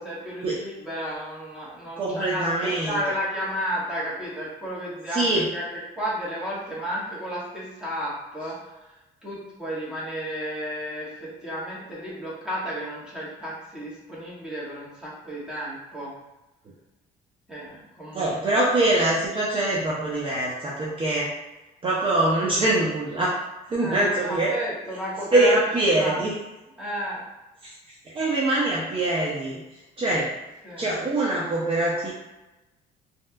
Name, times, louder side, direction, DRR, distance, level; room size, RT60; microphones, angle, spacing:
voice 1, 0.0-5.2 5.5-5.6 6.0-8.6 9.2-16.1 17.5-18.6 23.8-26.2 26.8-27.2 30.6-30.9, equal, 5° right, -8 dB, 1.3 m, -32 dB
voice 2, 2.0-3.0 5.1-5.5 18.1-21.3 21.8-23.4 23.7-24.5 25.3-26.3 27.6-27.7 28.1-29.6 30.0-30.3 30.8-32.1, right 2 dB, 30° right, -6 dB, 0.6 m, -23 dB
3.2 x 2.8 x 2.3 m, 1.0 s
cardioid pair, 110°, 17 cm